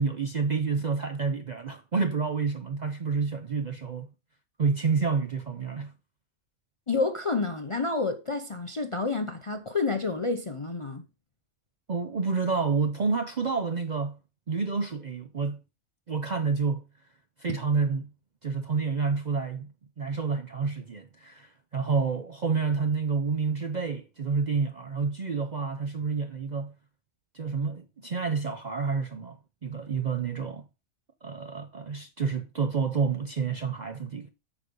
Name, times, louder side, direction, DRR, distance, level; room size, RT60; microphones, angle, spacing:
voice 1, 0.0-4.1 4.6-5.9 11.9-14.2 14.5-15.6 16.1-16.8 17.4-18.1 18.4-19.7 20.0-26.7 27.3-30.6 31.2-34.3, right 5 dB, 50° right, 0.5 m, -29 dB
voice 2, 6.9-11.0, left 3 dB, 35° left, 0.5 m, -29 dB
8.5 x 5.0 x 5.2 m
omnidirectional pair, 1.4 m